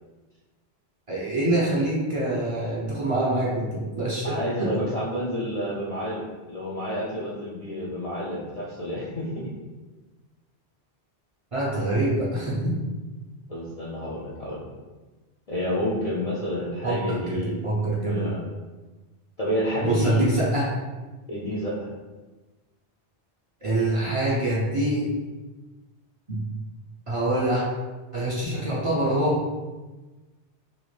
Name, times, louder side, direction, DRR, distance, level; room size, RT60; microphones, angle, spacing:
voice 1, 1.1-3.7 4.0-4.7 11.5-12.7 16.8-18.3 19.8-20.7 23.6-25.1 26.3-26.4 27.1-27.6 28.1-29.4, right 1 dB, 40° right, -7 dB, 0.5 m, -25 dB
voice 2, 4.2-9.5 13.5-14.6 15.5-17.6 18.1-18.4 19.4-20.4 21.3-21.9, equal, 50° left, -6 dB, 0.4 m, -29 dB
2.8 x 2.4 x 3.1 m, 1.2 s
omnidirectional pair, 1.1 m